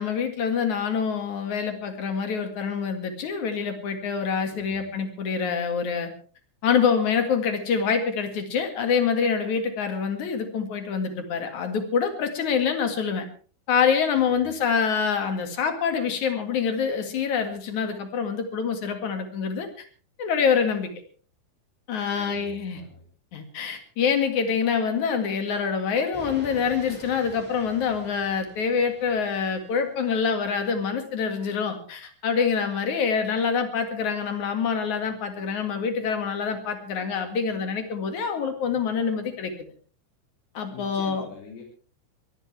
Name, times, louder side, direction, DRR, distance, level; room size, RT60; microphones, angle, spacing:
voice 1, 0.0-6.1 6.6-13.2 13.7-19.8 20.2-20.9 21.9-22.8 23.3-39.5 40.5-41.3, left 6 dB, 50° left, 6 dB, 2.7 m, -26 dB
voice 2, 22.1-23.0 40.7-41.6, left 4 dB, 85° left, -2 dB, 5.5 m, -44 dB
sound 1, 26.1-30.1, equal, ahead, 6.3 m, -45 dB
23.0 x 16.0 x 3.4 m, 0.41 s
omnidirectional pair, 5.6 m